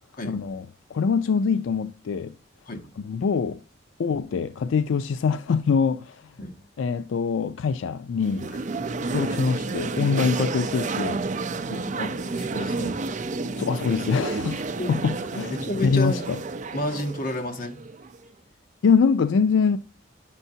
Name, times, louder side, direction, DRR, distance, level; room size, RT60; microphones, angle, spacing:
voice 1, 0.2-0.6 0.9-2.3 3.1-3.6 4.0-6.2 6.8-8.5 9.1-11.2 13.5-15.5 15.8-16.4 18.8-19.8, left 5 dB, 80° left, 0.4 m, -24 dB
sound 1, 8.2-18.2, right 3 dB, 40° right, 0.5 m, -30 dB
voice 2, 11.7-13.0 14.8-14.9 15.5-16.2 16.7-17.8, left 1 dB, 50° left, 1.3 m, -31 dB
9.9 x 6.8 x 2.7 m
head